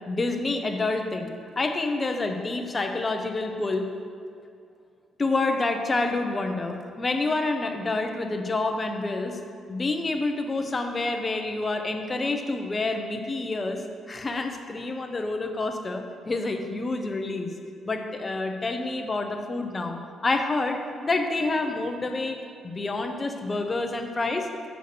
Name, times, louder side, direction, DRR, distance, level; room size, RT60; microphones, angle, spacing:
voice 1, 0.1-3.9 5.2-9.4 9.7-17.5 17.9-22.4 22.6-24.5, left 2 dB, 30° left, 5 dB, 0.9 m, -28 dB
6.5 x 6.3 x 6.8 m, 2.4 s
cardioid pair, 90°, 0 cm